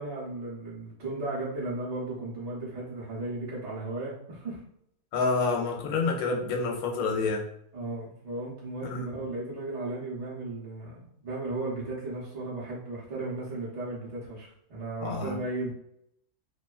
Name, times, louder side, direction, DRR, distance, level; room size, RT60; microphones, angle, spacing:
voice 1, 0.0-4.6 7.7-15.7, right 2 dB, 60° right, -6 dB, 0.4 m, -35 dB
voice 2, 5.1-7.4 8.8-9.0 15.0-15.3, left 4 dB, 70° left, 1 dB, 1.0 m, -28 dB
2.7 x 2.2 x 2.3 m, 0.73 s
omnidirectional pair, 1.7 m